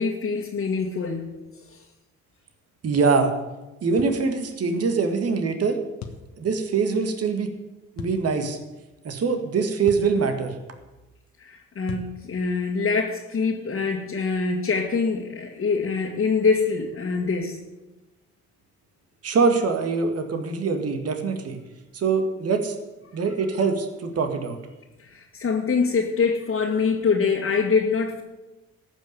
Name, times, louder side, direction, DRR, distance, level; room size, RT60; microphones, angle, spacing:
voice 1, 0.0-1.4 11.4-17.6 25.0-28.2, left 5 dB, 45° left, -2 dB, 2.0 m, -24 dB
voice 2, 2.8-3.3 3.8-5.8 6.4-7.5 8.0-8.6 9.0-10.5 19.2-21.6 21.9-22.8 23.1-24.6, right 4 dB, 50° right, 6 dB, 2.0 m, -23 dB
sound 1, 4.0-4.2 6.0-6.3 8.0-8.2 9.9-10.1 11.9-12.2, left 7 dB, 65° left, 1.5 m, -37 dB
14.0 x 6.2 x 9.4 m, 1.1 s
hypercardioid pair, 55°, 31 cm